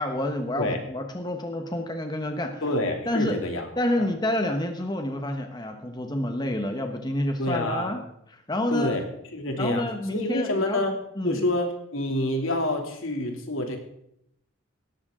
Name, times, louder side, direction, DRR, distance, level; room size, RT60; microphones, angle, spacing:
voice 1, 0.0-2.6 3.0-3.4 3.8-9.0 9.6-10.8 11.2-11.4, left 1 dB, 20° left, 5 dB, 1.1 m, -28 dB
voice 2, 2.6-3.7 4.0-4.1 7.4-7.9 8.7-9.0 9.3-11.0 11.2-13.8, left 1 dB, 75° left, 3 dB, 2.8 m, -27 dB
18.0 x 14.0 x 3.8 m, 0.75 s
head